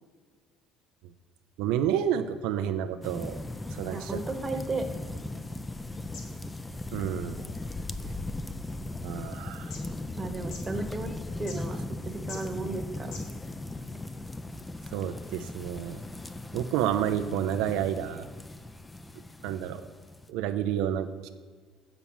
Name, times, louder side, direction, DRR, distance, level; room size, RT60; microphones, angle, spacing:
voice 1, 1.6-3.4 3.7-4.1 6.9-7.4 9.0-9.7 14.9-16.0 16.5-18.2 19.4-19.8 20.3-21.3, right 10 dB, 85° right, 8 dB, 0.4 m, -29 dB
sound 1, 3.0-20.3, left 2 dB, 10° left, 0.4 m, -38 dB
voice 2, 3.9-5.1 10.2-11.1 11.4-11.8 12.0-13.2, right 3 dB, 20° right, 5 dB, 1.0 m, -34 dB
sound 2, 4.4-13.7, left 4 dB, 70° left, 1.8 m, -52 dB
7.0 x 6.0 x 7.1 m, 1.5 s
cardioid pair, 125°, 0 cm